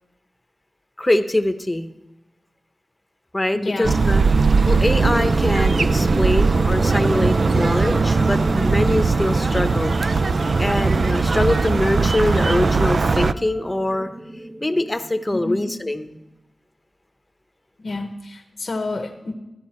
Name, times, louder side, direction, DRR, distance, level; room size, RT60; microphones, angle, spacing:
voice 1, 1.0-1.9 3.3-4.2 4.7-10.0 10.6-14.1 14.6-16.2, left 1 dB, 20° left, 8 dB, 0.8 m, -23 dB
voice 2, 3.6-4.0 15.3-15.7 17.8-19.3, left 2 dB, 65° left, 3 dB, 0.9 m, -29 dB
sound 1, 3.8-13.3, right 4 dB, 65° right, 0.3 m, -19 dB
sound 2, 4.9-15.2, right 1 dB, 10° right, 0.9 m, -32 dB
14.0 x 10.0 x 4.3 m, 0.99 s
cardioid pair, 55°, 0 cm